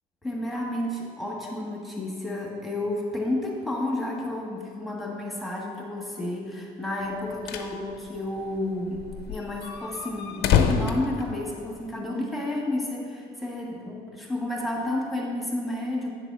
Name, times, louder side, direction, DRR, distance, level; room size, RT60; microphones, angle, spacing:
voice 1, 0.2-16.1, left 1 dB, ahead, -3 dB, 1.5 m, -31 dB
sound 1, 7.1-7.7 8.1-8.2 8.4-8.5 8.9-12.0, left 7 dB, 80° left, 0.7 m, -26 dB
8.8 x 4.0 x 6.1 m, 2.3 s
cardioid pair, 110°, 17 cm